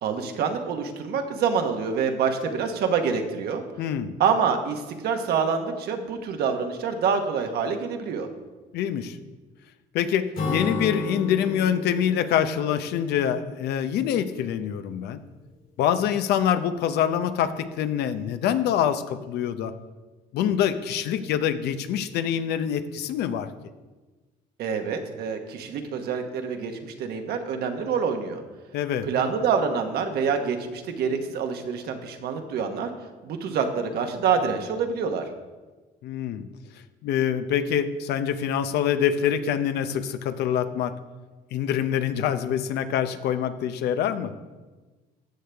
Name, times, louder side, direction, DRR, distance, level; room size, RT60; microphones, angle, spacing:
voice 1, 0.0-3.6 4.2-8.3 24.6-28.4 29.0-32.9 33.2-35.2, right 6 dB, 70° right, 5 dB, 1.2 m, -26 dB
voice 2, 3.8-4.1 8.7-9.2 9.9-15.2 15.8-19.7 20.3-23.5 28.7-29.1 36.0-36.5 37.0-40.9 41.5-44.3, left 9 dB, 75° left, 11 dB, 0.7 m, -25 dB
Acoustic guitar / Strum, 10.4-14.0, left 3 dB, 55° left, 2.5 m, -33 dB
14.5 x 6.5 x 3.4 m, 1.3 s
cardioid pair, 110°, 17 cm